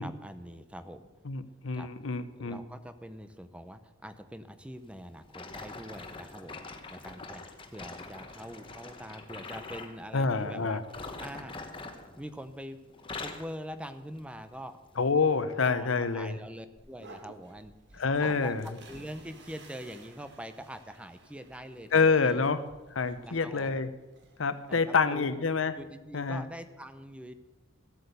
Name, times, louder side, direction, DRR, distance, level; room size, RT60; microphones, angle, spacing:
voice 1, 0.0-1.1 1.7-1.9 2.4-7.5 7.7-11.6 12.2-12.8 13.2-14.8 15.6-17.7 18.2-22.4 23.2-23.7 24.7-25.3 25.8-27.3, equal, 5° right, 10 dB, 0.7 m, -44 dB
voice 2, 1.3-2.6 10.1-10.8 15.0-16.4 18.0-18.6 21.9-22.6 22.9-23.9 24.4-25.7 26.1-26.4, left 4 dB, 75° left, 13 dB, 0.8 m, -27 dB
sound 1, 5.3-10.0 10.8-12.6 12.9-13.5 14.1-14.4 15.0-15.1, left 3 dB, 25° left, 1.1 m, -43 dB
sound 2, 16.8-25.0, right 2 dB, 60° right, 2.0 m, -55 dB
15.5 x 8.4 x 6.8 m, 1.1 s
head